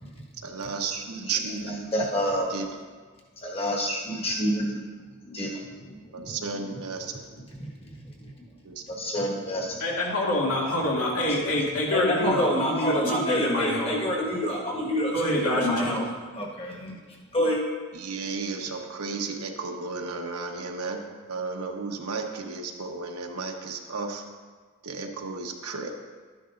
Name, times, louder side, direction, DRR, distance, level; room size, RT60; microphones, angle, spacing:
voice 1, 0.4-1.9 2.5-2.8 6.1-7.1 8.6-8.7 17.9-24.2 24.8-25.9, right 4 dB, 80° right, 3 dB, 1.0 m, -33 dB
voice 2, 1.7-2.5 3.4-4.8 5.2-6.3 7.6-8.5 8.9-9.8 11.9-16.0 16.3-17.0 17.3-17.6, equal, 25° left, -2 dB, 1.5 m, -28 dB
voice 3, 9.8-13.9 15.1-16.0, left 1 dB, 80° left, -4 dB, 2.3 m, -26 dB
12.0 x 10.0 x 2.5 m, 1.5 s
head